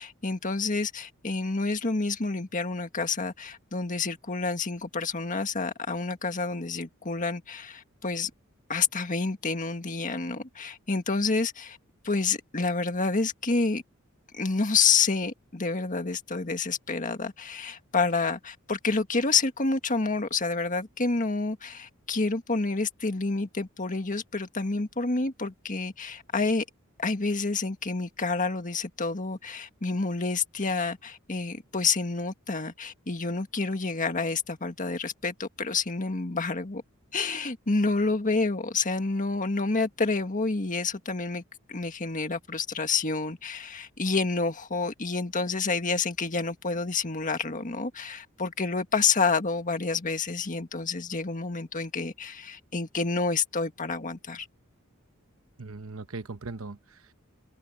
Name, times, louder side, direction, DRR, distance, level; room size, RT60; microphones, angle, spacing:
voice 1, 0.0-8.3 8.7-11.8 12.0-13.8 14.3-26.6 27.0-36.8 37.1-41.4 41.7-54.5, left 4 dB, 40° left, 1.7 m, -28 dB
voice 2, 55.6-57.1, right 3 dB, 70° right, 1.1 m, -39 dB
head